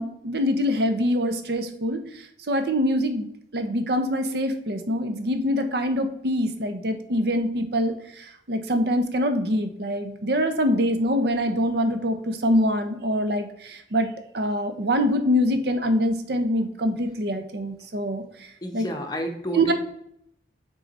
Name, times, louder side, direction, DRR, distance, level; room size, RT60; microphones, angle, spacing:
voice 1, 0.0-2.0 2.5-3.3 3.5-18.2 18.7-18.9 19.5-19.7, equal, 60° right, 8 dB, 0.7 m, -24 dB
voice 2, 18.6-19.7, equal, 20° left, 3 dB, 0.8 m, -30 dB
6.3 x 3.9 x 4.0 m, 0.73 s
head